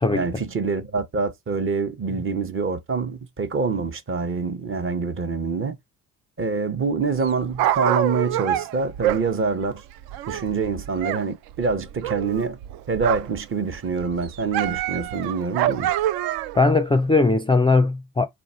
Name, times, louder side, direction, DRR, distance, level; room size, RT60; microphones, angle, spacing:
voice 1, 0.1-5.7 6.4-9.8 10.3-12.6 12.9-15.9, right 4 dB, 30° right, 0.8 m, -26 dB
Dog, 7.2-11.2 11.5-13.4 13.7-16.7 17.3-17.4, right 12 dB, 65° right, 0.5 m, -26 dB
voice 2, 16.5-18.3, left 3 dB, 15° left, 0.4 m, -19 dB
3.4 x 2.4 x 4.2 m
hypercardioid pair, 50°, 39 cm